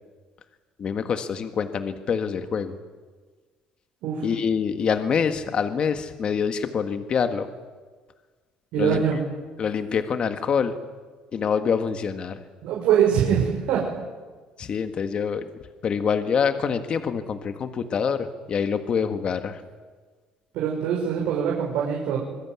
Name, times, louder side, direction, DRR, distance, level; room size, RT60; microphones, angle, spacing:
voice 1, 0.8-2.7 4.2-7.5 8.8-9.0 9.6-10.7 11.3-12.4 14.6-15.5 15.8-19.6, left 6 dB, 35° left, 8 dB, 1.6 m, -25 dB
voice 2, 8.7-9.2 12.6-13.8 20.5-22.2, right 8 dB, 70° right, -2 dB, 6.2 m, -23 dB
26.0 x 22.0 x 9.6 m, 1.4 s
cardioid pair, 150°, 3 cm